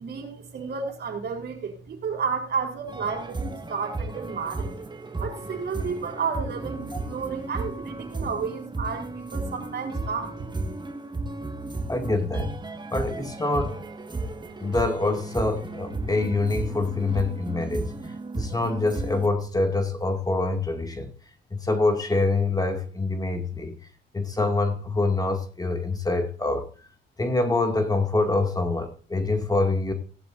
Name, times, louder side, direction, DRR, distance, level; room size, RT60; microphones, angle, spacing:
voice 1, 0.0-4.7 5.2-10.5, right 5 dB, 55° right, 3.8 m, -31 dB
sound 1, 2.9-19.3, right 2 dB, 20° right, 1.7 m, -34 dB
voice 2, 11.9-12.6 12.9-13.8 14.6-21.1 21.5-23.8 24.1-26.7 27.2-29.9, left 2 dB, 20° left, 2.2 m, -25 dB
16.5 x 10.5 x 2.6 m
cardioid pair, 90°, 20 cm